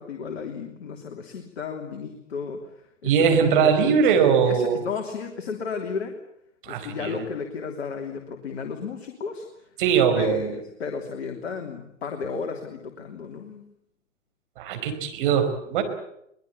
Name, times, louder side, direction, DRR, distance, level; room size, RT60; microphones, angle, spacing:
voice 1, 0.0-6.2 6.7-9.5 10.1-10.5 10.8-13.6, left 5 dB, 55° left, 3 dB, 3.2 m, -33 dB
voice 2, 3.0-4.8 6.6-7.2 9.8-10.6 14.6-15.8, right 7 dB, 40° right, 5 dB, 5.1 m, -21 dB
23.5 x 20.5 x 8.6 m, 0.76 s
figure-of-eight pair, 120°, 39 cm